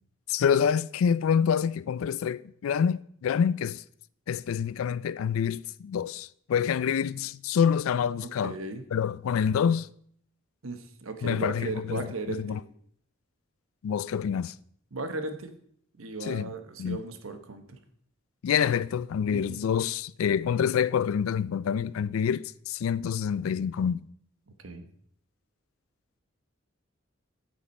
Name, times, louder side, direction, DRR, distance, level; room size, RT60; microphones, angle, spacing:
voice 1, 0.3-3.8 4.3-8.6 8.9-9.9 11.2-12.6 13.8-14.6 16.2-16.5 16.8-17.0 18.4-24.0, left 7 dB, 90° left, 0.3 m, -27 dB
voice 2, 8.4-8.8 10.6-12.6 14.9-15.5 16.0-17.8 19.3-19.6 24.5-24.9, right 3 dB, 85° right, 1.0 m, -36 dB
8.5 x 7.4 x 4.2 m
head